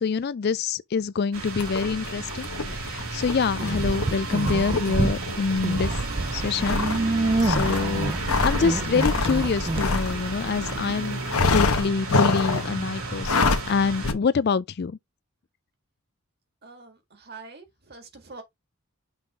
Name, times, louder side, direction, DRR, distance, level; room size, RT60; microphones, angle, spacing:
voice 1, 0.0-2.5 2.8-5.9 6.3-6.8 7.1-8.2 8.4-11.2 11.5-15.0, left 5 dB, 45° left, 0.3 m, -26 dB
sound 1, 1.3-14.1, right 3 dB, 80° right, 3.1 m, -33 dB
sound 2, 1.6-10.8 11.3-12.7 13.2-13.7 14.0-14.1, left 3 dB, 85° left, 1.1 m, -27 dB
sound 3, 3.6-5.2 5.5-9.8, right 2 dB, 25° right, 0.4 m, -27 dB
voice 2, 16.6-18.4, right 3 dB, 45° right, 1.9 m, -45 dB
6.1 x 3.5 x 5.0 m
head